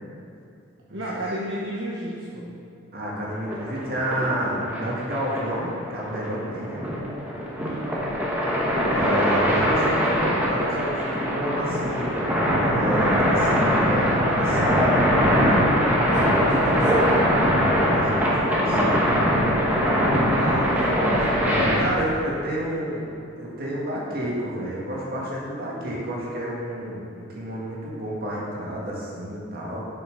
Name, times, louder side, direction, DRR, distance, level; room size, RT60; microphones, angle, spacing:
voice 1, 0.9-2.5 7.6-7.9 16.0-17.3 19.5-21.4, right 1 dB, 60° right, -5 dB, 0.9 m, -31 dB
voice 2, 2.9-6.8 8.6-12.2 12.6-15.3 17.8-19.1 21.4-29.8, equal, 45° right, -5 dB, 1.7 m, -30 dB
sound 1, 3.4-21.8, equal, 5° right, 1.0 m, -22 dB
7.2 x 5.9 x 5.2 m, 2.6 s
head